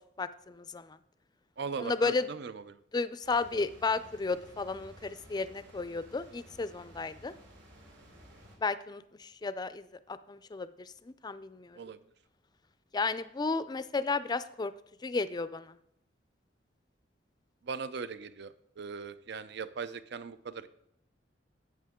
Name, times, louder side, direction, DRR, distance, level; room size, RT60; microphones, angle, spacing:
voice 1, 0.2-1.0 1.8-2.3 2.9-7.3 8.6-11.8 12.9-14.7 15.0-15.8, left 4 dB, 25° left, 14 dB, 0.4 m, -33 dB
voice 2, 1.6-2.8 11.7-12.0 17.6-20.7, right 5 dB, 65° right, 14 dB, 0.6 m, -39 dB
sound 1, 3.2-8.6, equal, 85° right, 2.8 m, -55 dB
11.0 x 8.4 x 3.7 m, 0.75 s
head